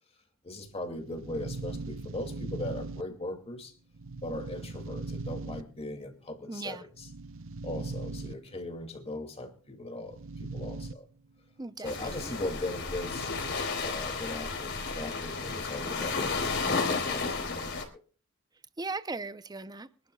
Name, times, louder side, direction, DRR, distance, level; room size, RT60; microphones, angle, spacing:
voice 1, 0.4-3.7 4.2-7.1 7.6-11.1 11.8-13.3 13.8-17.9, left 1 dB, 30° left, 2.5 m, -39 dB
sound 1, 0.7-3.5 3.9-6.0 6.9-8.7 10.0-10.9 11.2-11.3 12.9-13.7, right 3 dB, 65° right, 0.8 m, -39 dB
voice 2, 6.5-6.8 11.6-12.3 18.8-19.9, right 3 dB, 20° right, 0.7 m, -38 dB
sound 2, 11.8-17.8, left 4 dB, 55° left, 3.8 m, -32 dB
24.5 x 12.0 x 2.3 m
head